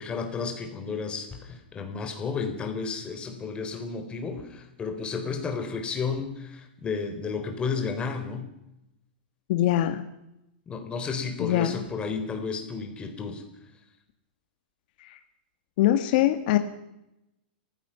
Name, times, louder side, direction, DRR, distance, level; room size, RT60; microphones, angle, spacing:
voice 1, 0.0-8.5 10.7-13.4, left 5 dB, 20° left, 6 dB, 3.9 m, -32 dB
voice 2, 9.5-10.0 11.4-11.8 15.0-15.2 15.8-16.6, left 13 dB, 55° left, 9 dB, 1.6 m, -23 dB
29.0 x 16.0 x 5.8 m, 0.88 s
hypercardioid pair, 140°, 5 cm